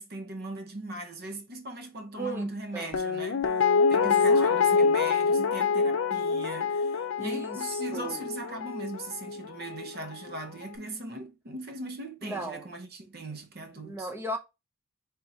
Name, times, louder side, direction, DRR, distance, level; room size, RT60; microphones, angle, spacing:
voice 1, 0.0-3.5 3.9-14.1, right 2 dB, 45° right, 0.7 m, -39 dB
voice 2, 2.2-3.0 4.0-5.0 7.2-8.3 12.2-12.7 13.8-14.4, right 2 dB, 10° right, 0.6 m, -37 dB
Guitar, 2.9-9.9 10.3-10.4, left 5 dB, 60° left, 0.4 m, -26 dB
4.3 x 3.5 x 2.7 m
head